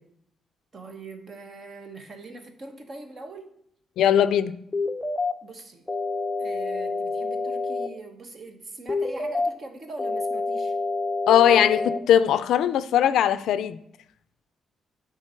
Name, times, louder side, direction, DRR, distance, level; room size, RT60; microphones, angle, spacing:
voice 1, 0.7-3.6 5.4-5.8 6.4-10.7, right 2 dB, 40° right, 5 dB, 1.0 m, -42 dB
voice 2, 4.0-4.5 11.3-13.8, left 10 dB, 85° left, 14 dB, 0.4 m, -19 dB
sound 1, 4.7-5.3 5.9-7.9 8.9-9.5 10.0-12.0, left 3 dB, 10° left, 0.6 m, -27 dB
9.0 x 3.9 x 4.4 m, 0.70 s
cardioid pair, 135°, 0 cm